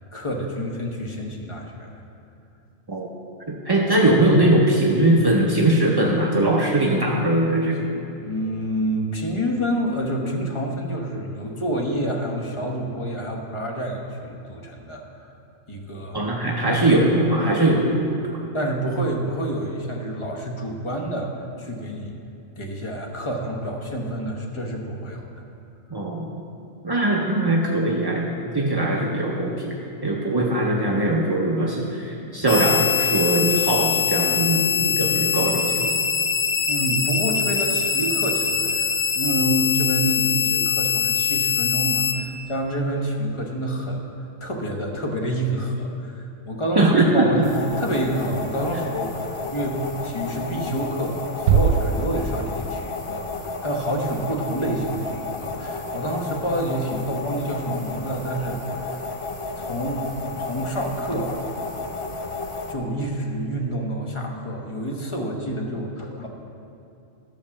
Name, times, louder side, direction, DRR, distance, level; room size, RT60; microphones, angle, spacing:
voice 1, 0.1-1.9 8.2-15.3 15.7-16.3 16.6-16.8 18.5-21.3 21.6-22.2 22.6-25.3 36.7-44.0 44.4-58.6 59.6-61.6 62.7-66.3, right 1 dB, 25° left, 1 dB, 1.0 m, -28 dB
voice 2, 3.5-7.9 16.1-18.3 25.9-26.3 26.8-29.7 30.0-36.0 46.8-47.3, right 1 dB, 30° right, -2 dB, 0.5 m, -21 dB
sound 1, 32.5-42.1, left 6 dB, 85° left, 1.3 m, -23 dB
sound 2, 47.4-62.7, left 3 dB, 55° left, 0.3 m, -32 dB
sound 3, 51.5-53.0, right 6 dB, 85° right, 1.0 m, -22 dB
12.5 x 5.3 x 7.1 m, 2.7 s
omnidirectional pair, 1.4 m